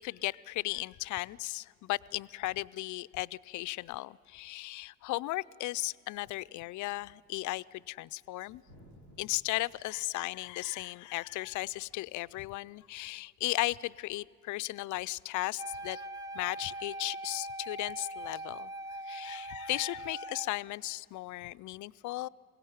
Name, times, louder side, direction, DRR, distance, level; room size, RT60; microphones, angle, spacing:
voice 1, 0.0-8.6 9.2-16.0 16.3-18.7 19.1-22.3, left 18 dB, 50° left, 0.5 m, -36 dB
sound 1, 5.5-12.9, equal, 80° right, 5.1 m, -64 dB
Wind instrument woodwind instrument, 15.6-20.6, right 1 dB, 10° right, 0.6 m, -41 dB
21.5 x 16.5 x 9.6 m
supercardioid pair, 80°, 38 cm